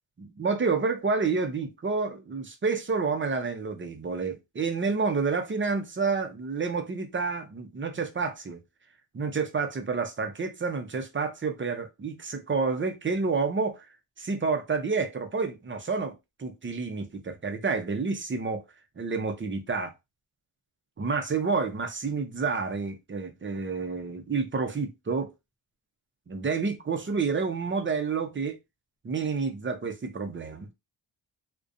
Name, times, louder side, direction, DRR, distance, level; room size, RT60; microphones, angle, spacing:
voice 1, 0.2-8.6 9.1-13.9 14.2-18.6 19.0-19.9 21.0-25.3 26.3-28.6 29.0-30.7, right 4 dB, 25° right, 0.5 m, -29 dB
2.5 x 2.2 x 2.5 m
cardioid pair, 85°, 44 cm